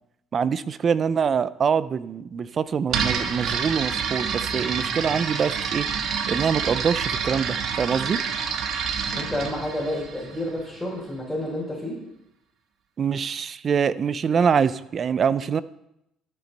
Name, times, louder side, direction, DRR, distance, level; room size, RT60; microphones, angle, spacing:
voice 1, 0.3-5.9 6.3-8.2 13.0-15.6, right 6 dB, 40° right, 16 dB, 0.6 m, -24 dB
sound 1, 2.9-10.7, right 6 dB, 60° right, 1.4 m, -28 dB
voice 2, 9.1-12.0, left 1 dB, 5° left, -6 dB, 4.4 m, -30 dB
13.5 x 8.5 x 4.1 m, 0.82 s
cardioid pair, 95°, 0 cm